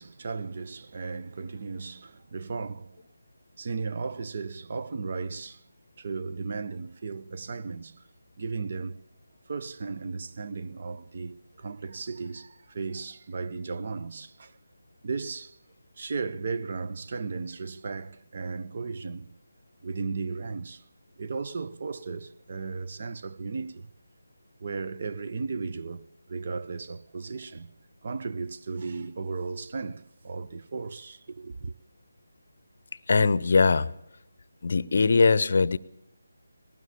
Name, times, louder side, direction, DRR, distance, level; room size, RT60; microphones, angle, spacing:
voice 1, 0.0-3.0 3.6-5.6 6.0-8.1 8.4-9.0 9.5-14.6 15.0-15.6 16.0-19.3 19.8-20.8 21.2-23.9 24.6-27.7 28.0-31.7, right 4 dB, 40° right, 0.7 m, -35 dB
voice 2, 33.1-33.9 34.6-35.8, left 4 dB, 50° left, 0.7 m, -21 dB
19.5 x 18.5 x 7.0 m
figure-of-eight pair, 155°, 0 cm